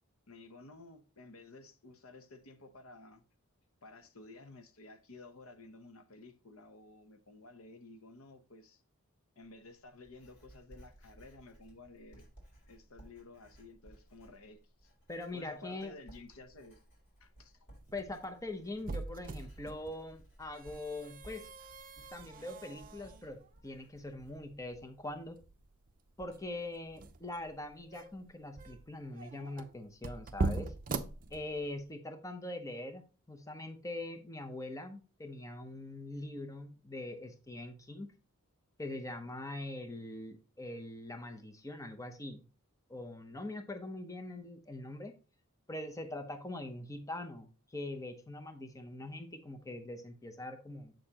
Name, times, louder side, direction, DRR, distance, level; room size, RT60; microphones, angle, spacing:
voice 1, 0.3-3.2 3.8-8.8 9.4-12.3 12.7-14.9 15.3-16.8 17.2-17.6, left 2 dB, 65° left, 0.8 m, -53 dB
Writing, 9.4-24.8, right 1 dB, 50° left, 4.1 m, -59 dB
voice 2, 15.1-15.9 17.9-21.4 22.1-25.4 26.2-30.7 31.3-33.0 33.3-38.1 38.8-42.4 42.9-45.1 45.7-50.9, left 2 dB, 15° left, 0.7 m, -43 dB
sound 1, 17.7-31.9, right 3 dB, 40° right, 0.6 m, -42 dB
7.7 x 6.6 x 2.9 m
head